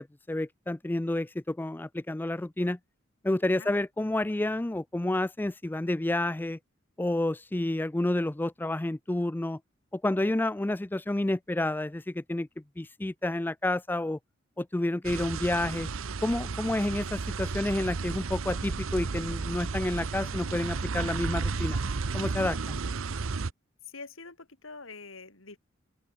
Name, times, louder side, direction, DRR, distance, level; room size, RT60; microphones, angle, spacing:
voice 1, 0.0-2.8 3.2-6.6 7.0-9.6 9.9-12.5 12.8-14.2 14.6-15.9 16.2-21.8 22.1-22.8, left 1 dB, 10° left, 0.4 m, -29 dB
sound 1, 15.0-23.5, right 4 dB, 80° right, 0.8 m, -33 dB
voice 2, 23.8-25.6, left 4 dB, 75° left, 4.2 m, -45 dB
open air
head